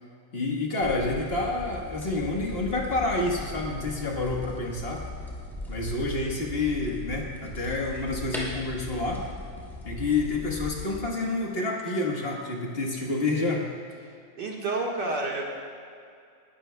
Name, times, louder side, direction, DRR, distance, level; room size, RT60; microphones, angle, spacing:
voice 1, 0.3-5.0 5.7-9.2 9.8-13.7, left 2 dB, 35° left, -1 dB, 1.5 m, -28 dB
sound 1, 0.8-11.0, left 2 dB, ahead, 2.2 m, -39 dB
voice 2, 14.4-15.4, right 2 dB, 65° right, -2 dB, 2.3 m, -29 dB
19.0 x 12.5 x 2.3 m, 2.3 s
omnidirectional pair, 2.0 m